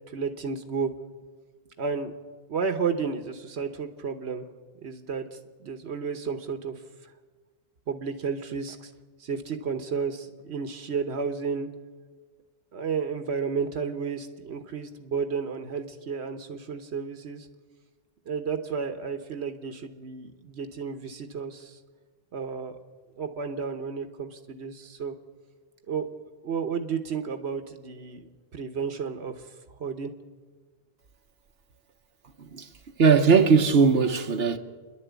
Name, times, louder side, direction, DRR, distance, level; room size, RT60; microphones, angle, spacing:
voice 1, 0.1-0.9 1.8-2.1 2.5-4.5 4.8-6.8 7.9-8.9 9.2-11.7 12.7-17.5 18.3-21.8 22.3-22.8 23.2-25.1 25.9-26.1 26.4-28.2 28.5-30.1, right 5 dB, 85° right, 1.3 m, -32 dB
voice 2, 33.0-34.6, right 5 dB, 70° right, 1.3 m, -19 dB
29.0 x 11.0 x 8.2 m
omnidirectional pair, 1.1 m